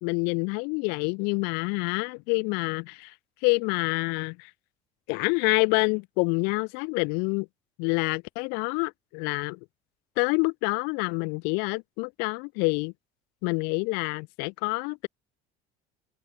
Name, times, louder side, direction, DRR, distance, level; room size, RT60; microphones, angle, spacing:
voice 1, 0.0-3.1 3.4-4.4 5.1-7.5 7.8-9.6 10.2-12.9 13.4-15.1, left 34 dB, 70° left, 3.3 m, -27 dB
cardioid pair, 180°, 17 cm